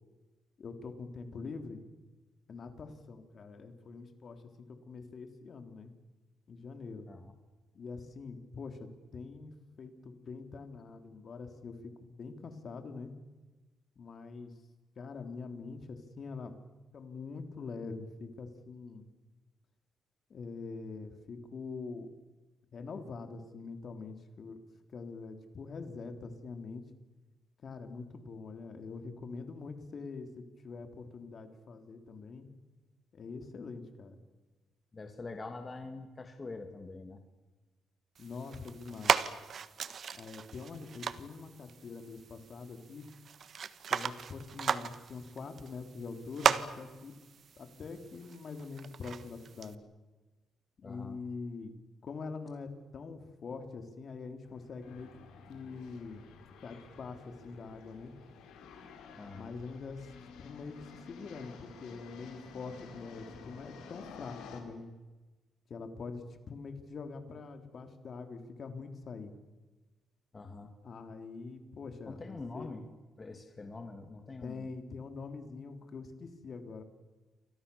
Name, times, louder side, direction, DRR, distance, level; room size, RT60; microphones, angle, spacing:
voice 1, 0.6-1.9 2.5-4.4 4.7-5.9 6.5-7.1 7.7-8.9 9.1-13.1 14.0-14.6 15.0-16.5 16.9-19.1 20.3-22.1 22.7-24.6 24.9-26.8 27.6-32.5 33.1-34.2 38.2-39.3 40.1-43.1 43.9-47.1 47.6-49.8 50.8-51.7 52.0-55.1 55.5-56.2 56.6-58.1 59.3-60.1 60.4-64.9 65.7-69.3 70.8-72.7 74.4-76.8, left 4 dB, 50° left, 7 dB, 3.4 m, -44 dB
voice 2, 34.9-37.2 50.8-51.2 59.2-59.5 70.3-70.7 72.1-72.9 73.2-74.7, left 3 dB, 30° left, 5 dB, 2.7 m, -44 dB
sound 1, 38.1-49.7, right 7 dB, 55° right, 1.4 m, -36 dB
sound 2, 54.4-64.6, left 6 dB, 85° left, 5.0 m, -52 dB
29.5 x 24.0 x 7.1 m, 1.2 s
cardioid pair, 90°, 0 cm